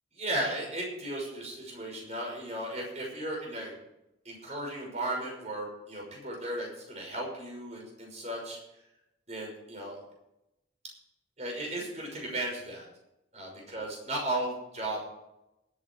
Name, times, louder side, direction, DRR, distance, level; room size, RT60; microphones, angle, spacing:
voice 1, 0.1-3.7 4.2-8.6 9.3-10.0 11.4-12.9 13.3-15.0, right 1 dB, 35° right, 0 dB, 5.8 m, -35 dB
19.0 x 9.5 x 4.6 m, 0.87 s
head